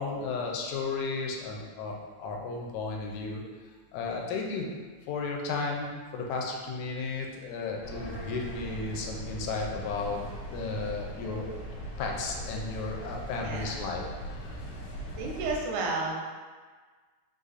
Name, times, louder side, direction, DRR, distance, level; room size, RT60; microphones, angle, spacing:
voice 1, 0.0-3.4 3.9-4.7 5.1-10.2 10.5-11.6 12.0-14.0 14.3-14.6, left 4 dB, 85° left, 0 dB, 1.9 m, -34 dB
sound 1, 7.8-15.6, equal, 65° left, 2.0 m, -40 dB
voice 2, 13.4-13.8 15.2-16.2, right 3 dB, 85° right, -1 dB, 2.2 m, -32 dB
5.0 x 2.5 x 4.0 m, 1.5 s
omnidirectional pair, 3.3 m